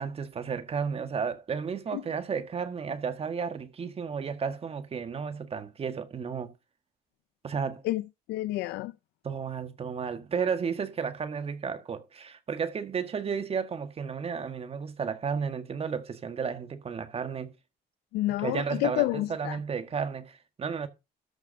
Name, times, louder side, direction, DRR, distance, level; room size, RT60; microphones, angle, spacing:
voice 1, 0.0-6.5 7.4-7.8 9.2-17.5 18.4-20.9, right 6 dB, 35° right, 1.7 m, -33 dB
voice 2, 7.8-8.9 18.1-19.6, left 17 dB, 85° left, 0.5 m, -29 dB
13.5 x 4.7 x 6.6 m
cardioid pair, 110°, 17 cm